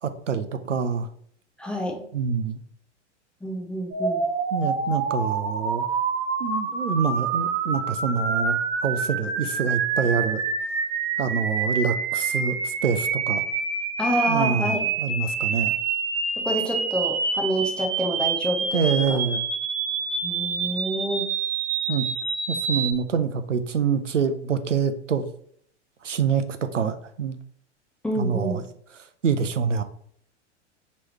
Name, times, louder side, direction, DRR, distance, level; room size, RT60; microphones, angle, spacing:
voice 1, 0.0-1.1 2.1-2.6 4.5-5.9 6.4-8.6 8.8-10.4 11.2-13.5 14.3-15.7 18.7-19.5 21.9-22.1 22.5-25.2 26.0-27.4 28.2-28.6 29.2-29.8, right 6 dB, 90° right, 10 dB, 0.5 m, -26 dB
voice 2, 1.6-2.0 3.4-4.3 14.0-14.8 16.4-19.2 20.2-21.3 28.0-28.6, equal, 5° left, 0 dB, 0.4 m, -28 dB
sound 1, 3.9-22.9, right 5 dB, 45° right, 1.1 m, -27 dB
4.6 x 3.1 x 3.0 m, 0.64 s
figure-of-eight pair, 95°, 36 cm